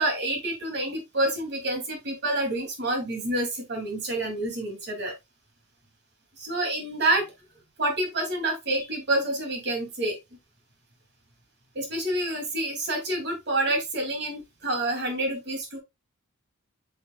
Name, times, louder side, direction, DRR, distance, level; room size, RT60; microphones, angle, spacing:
voice 1, 0.0-5.1 6.4-7.3 7.8-10.2 11.7-15.8, right 1 dB, 50° right, 2.7 m, -28 dB
8.8 x 5.6 x 2.3 m
head